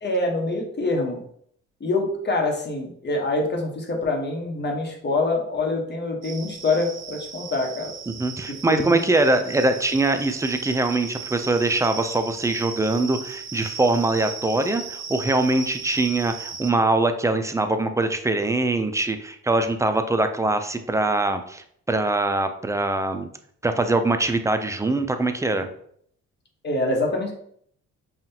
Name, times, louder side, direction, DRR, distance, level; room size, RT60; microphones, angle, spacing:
voice 1, 0.0-1.2 1.8-7.9 8.7-9.0 26.6-27.3, left 2 dB, 35° left, 1 dB, 1.1 m, -25 dB
sound 1, 6.2-16.7, right 6 dB, 60° right, 0.6 m, -37 dB
voice 2, 8.1-23.3 23.6-25.7, right 2 dB, 10° right, 8 dB, 0.4 m, -23 dB
5.6 x 2.4 x 2.8 m, 0.66 s
cardioid pair, 90°, 30 cm